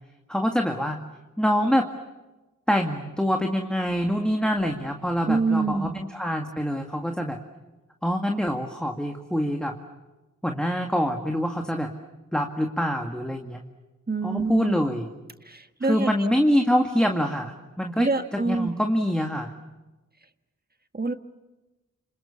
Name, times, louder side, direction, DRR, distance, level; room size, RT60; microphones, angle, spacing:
voice 1, 0.3-1.0 1.4-1.9 2.7-7.4 8.0-9.8 10.4-11.9 12.3-13.6 14.2-15.1 15.8-19.5, equal, 5° left, 3 dB, 1.9 m, -25 dB
voice 2, 5.3-6.0 14.1-14.8 15.5-16.3 18.0-18.7 20.9-21.1, right 3 dB, 30° right, 9 dB, 1.4 m, -26 dB
29.0 x 26.5 x 7.2 m, 1.1 s
wide cardioid pair, 95°, 32 cm